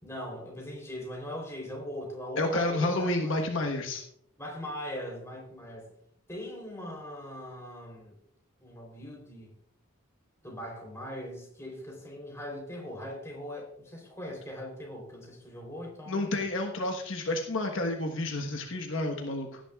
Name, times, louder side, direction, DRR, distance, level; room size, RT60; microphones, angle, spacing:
voice 1, 0.0-3.3 4.4-5.9 6.3-8.2 8.6-9.5 10.4-16.3, left 1 dB, 15° left, -1 dB, 3.5 m, -40 dB
voice 2, 2.4-4.0 16.1-19.6, left 2 dB, 65° left, 2 dB, 1.3 m, -30 dB
17.0 x 10.0 x 2.4 m, 0.69 s
head